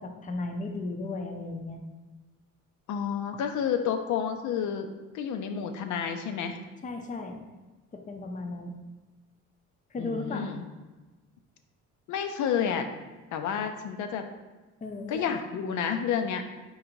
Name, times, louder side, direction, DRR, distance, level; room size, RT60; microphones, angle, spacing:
voice 1, 0.0-1.8 6.8-7.4 7.9-8.8 9.9-10.5 14.8-15.3, left 2 dB, 25° left, 4 dB, 0.5 m, -35 dB
voice 2, 2.9-4.9 5.1-6.6 10.0-10.7 12.1-12.9 13.3-14.2 15.1-16.4, left 7 dB, 75° left, 7 dB, 0.6 m, -30 dB
3.9 x 2.6 x 4.5 m, 1.2 s
cardioid pair, 90°, 30 cm